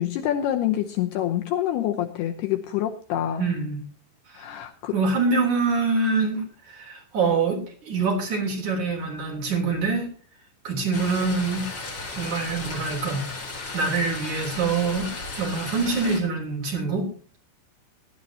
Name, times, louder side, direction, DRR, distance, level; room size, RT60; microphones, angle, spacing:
voice 1, 0.0-3.5 4.4-4.9, left 11 dB, 75° left, 5 dB, 2.6 m, -26 dB
voice 2, 3.4-3.8 4.3-4.4 4.9-10.1 10.6-11.7 12.1-13.2 13.7-17.1, right 4 dB, 45° right, 1 dB, 4.6 m, -25 dB
sound 1, 10.9-16.2, left 3 dB, 30° left, 3.3 m, -35 dB
19.0 x 12.0 x 2.9 m, 0.38 s
omnidirectional pair, 5.3 m